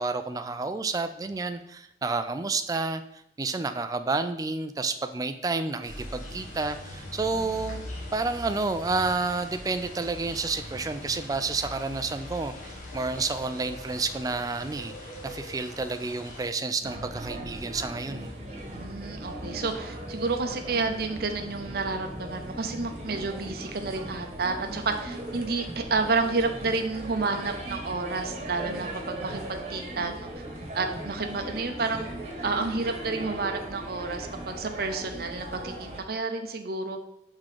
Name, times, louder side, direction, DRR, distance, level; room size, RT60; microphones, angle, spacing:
voice 1, 0.0-3.0 3.4-7.8 8.1-18.3, right 3 dB, 20° right, 10 dB, 0.3 m, -30 dB
sound 1, 5.8-16.5, left 1 dB, 45° left, 1.3 m, -41 dB
sound 2, 16.8-36.0, right 1 dB, 35° right, 1.2 m, -38 dB
voice 2, 18.7-30.3 30.7-32.1 32.4-37.0, right 3 dB, 55° right, 5 dB, 0.6 m, -30 dB
5.8 x 3.7 x 4.9 m, 0.81 s
head